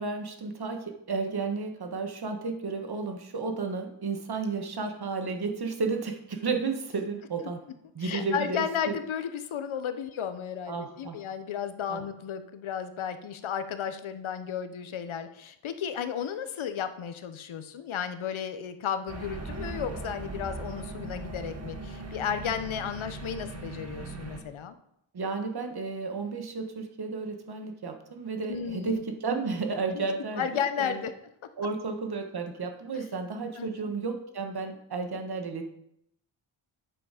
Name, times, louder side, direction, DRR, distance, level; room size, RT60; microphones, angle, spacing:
voice 1, 0.0-7.6 7.9-8.9 10.7-11.2 11.9-12.0 25.1-31.0 31.6-35.6, right 4 dB, 50° right, 6 dB, 1.5 m, -32 dB
voice 2, 8.0-24.8 28.4-29.0 29.9-30.1 30.4-31.1 33.6-33.9, left 8 dB, 75° left, 10 dB, 0.9 m, -33 dB
sound 1, 19.1-24.4, right 3 dB, 30° right, 1.7 m, -39 dB
8.8 x 7.0 x 5.0 m, 0.75 s
wide cardioid pair, 100°, 48 cm